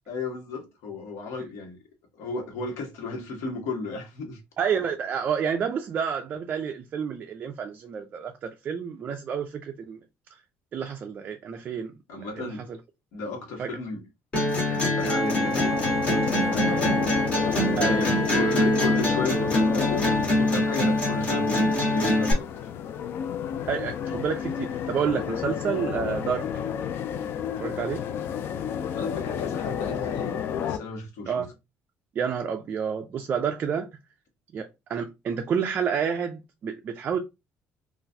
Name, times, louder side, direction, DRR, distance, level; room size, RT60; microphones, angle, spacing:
voice 1, 0.1-1.8 2.1-4.4 12.1-12.6 13.1-14.0 14.4-15.7 16.1-16.9 17.7-22.5 28.9-31.4, left 3 dB, 75° left, 1.3 m, -34 dB
voice 2, 4.6-10.0 10.7-11.9 12.3-12.8 13.6-13.7 17.8-18.2 23.7-26.5 27.6-28.0 31.3-31.5 32.2-33.9 34.5-37.2, right 7 dB, 30° right, 0.3 m, -29 dB
sound 1, 14.3-22.3, left 1 dB, 25° left, 1.3 m, -24 dB
sound 2, 15.0-30.8, left 8 dB, 45° left, 0.3 m, -32 dB
3.9 x 2.4 x 2.6 m
cardioid pair, 175°, 5 cm